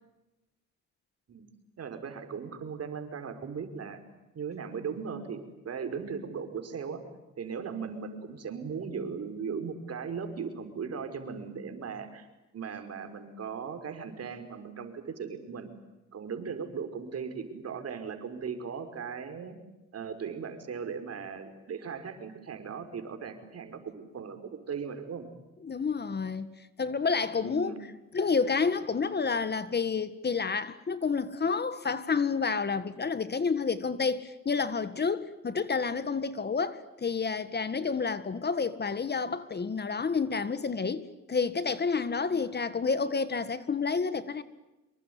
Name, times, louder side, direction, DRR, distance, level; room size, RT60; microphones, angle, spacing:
voice 1, 1.8-4.0 4.3-7.0 7.4-12.3 12.5-15.7 16.1-19.5 19.9-25.3 27.4-27.8, right 6 dB, 55° right, 5.2 m, -38 dB
voice 2, 25.6-26.5 26.8-27.7 28.1-44.4, left 5 dB, 35° left, 1.7 m, -29 dB
26.0 x 23.5 x 9.6 m
cardioid pair, 90°, 30 cm